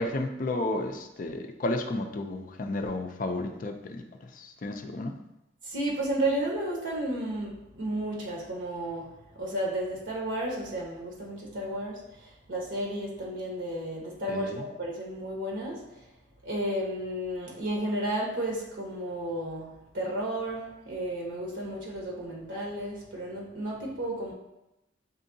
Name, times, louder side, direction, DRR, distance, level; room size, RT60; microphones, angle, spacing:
voice 1, 0.0-4.0 4.4-5.2 14.3-14.6, left 2 dB, 45° left, 5 dB, 0.4 m, -32 dB
voice 2, 5.6-9.1 9.3-15.8 16.4-24.3, right 1 dB, 85° right, -2 dB, 1.0 m, -33 dB
7.2 x 2.7 x 2.6 m, 0.91 s
head